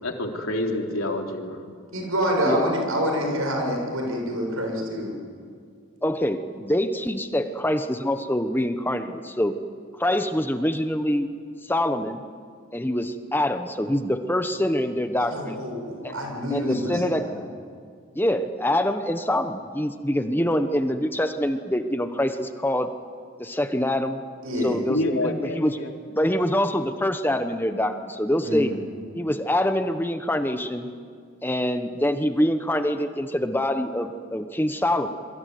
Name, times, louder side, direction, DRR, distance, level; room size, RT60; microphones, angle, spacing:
voice 1, 0.0-1.6 24.9-25.9, left 1 dB, 85° left, 2 dB, 3.4 m, -28 dB
voice 2, 1.9-5.1 15.3-17.3 24.4-24.8 28.4-28.8, equal, 85° right, 2 dB, 7.3 m, -27 dB
voice 3, 6.0-9.5 10.0-11.3 11.6-12.2 12.7-15.6 16.0-16.2 16.5-17.3 18.1-22.9 23.4-24.2 24.6-25.8 26.1-28.7 29.1-30.9 31.4-35.1, left 1 dB, 10° left, 8 dB, 1.1 m, -25 dB
26.5 x 23.5 x 9.5 m, 2.2 s
head